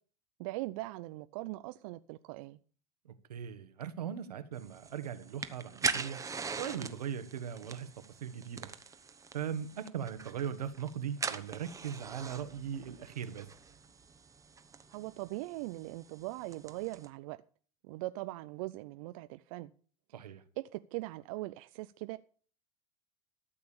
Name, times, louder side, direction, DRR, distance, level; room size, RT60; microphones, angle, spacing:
voice 1, 0.4-2.6 14.9-17.4 17.9-19.7 20.6-22.2, right 19 dB, 60° right, 0.5 m, -40 dB
voice 2, 3.3-6.2 6.6-7.9 8.2-8.7 9.3-13.5 20.1-20.4, right 8 dB, 90° right, 1.4 m, -39 dB
sound 1, 4.6-17.1, right 5 dB, 15° right, 1.1 m, -42 dB
13.0 x 6.8 x 7.0 m
hypercardioid pair, 105°, 20 cm